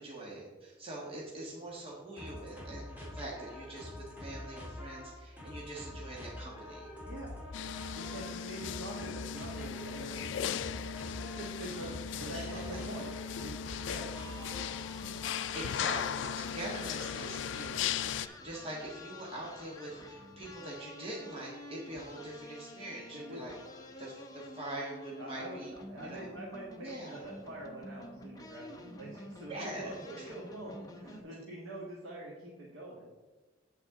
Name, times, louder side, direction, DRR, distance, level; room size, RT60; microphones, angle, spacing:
voice 1, 0.0-6.9 11.6-12.0 12.3-12.8 15.5-23.5 24.0-26.3 26.8-27.2 29.5-30.3, right 1 dB, 30° right, -4 dB, 1.5 m, -43 dB
sound 1, 2.2-14.9, left 1 dB, 10° right, 2.9 m, -46 dB
voice 2, 7.0-7.4 8.0-10.8 11.4-13.1 13.4-14.2 23.1-23.4 25.2-25.6 25.9-33.1, right 1 dB, 90° right, -4 dB, 1.7 m, -45 dB
sound 2, 7.5-18.3, left 8 dB, 70° left, 0.3 m, -37 dB
sound 3, 14.1-31.2, left 1 dB, 20° left, 0.8 m, -50 dB
8.8 x 8.2 x 3.7 m, 1.2 s
head